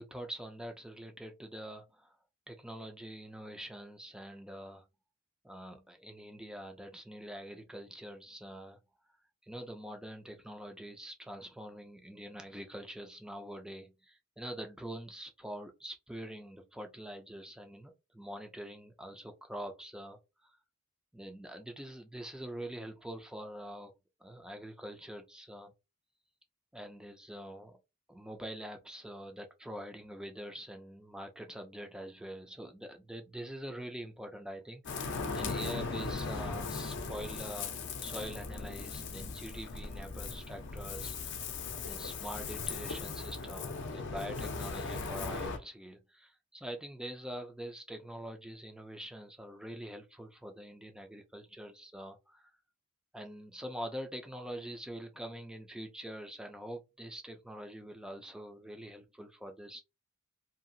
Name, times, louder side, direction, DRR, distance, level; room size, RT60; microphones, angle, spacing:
voice 1, 0.0-2.1 2.5-4.8 5.4-8.8 9.4-20.5 21.1-23.9 24.2-25.7 26.7-27.8 28.1-37.7 38.0-41.5 41.9-52.5 53.1-59.8, equal, 5° right, 0.4 m, -45 dB
Ocean, 34.8-45.6, left 4 dB, 55° left, 0.5 m, -38 dB
2.7 x 2.4 x 2.6 m
head